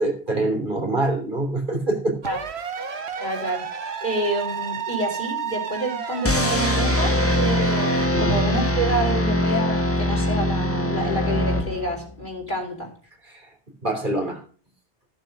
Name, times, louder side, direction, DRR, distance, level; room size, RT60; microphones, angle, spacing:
voice 1, 0.0-2.2 8.1-8.4 13.3-13.5 13.8-14.4, right 2 dB, 45° right, 2 dB, 3.5 m, -25 dB
sound 1, 2.2-8.1, right 6 dB, 70° right, 1.4 m, -31 dB
voice 2, 3.2-3.7 4.0-12.9, right 1 dB, 45° left, 0 dB, 4.7 m, -28 dB
sound 2, 6.2-12.1, left 1 dB, 10° left, 1.4 m, -22 dB
15.0 x 7.2 x 6.6 m, 0.42 s
omnidirectional pair, 1.1 m